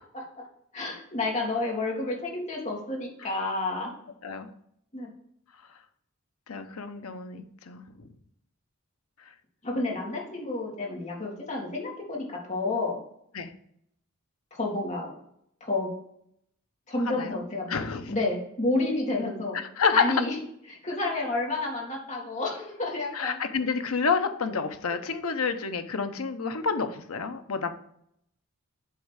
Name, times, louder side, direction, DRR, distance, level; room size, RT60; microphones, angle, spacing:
voice 1, 0.7-3.9 4.9-5.1 9.6-13.0 14.5-15.1 15.6-15.9 16.9-17.7 18.1-19.6 19.9-20.4 20.7-23.4, left 2 dB, 35° left, -2 dB, 2.0 m, -30 dB
voice 2, 6.5-8.1 13.3-13.5 17.0-17.4 17.7-18.2 19.5-20.0 23.1-27.7, left 5 dB, 75° left, 8 dB, 0.8 m, -29 dB
8.3 x 3.2 x 6.2 m, 0.71 s
head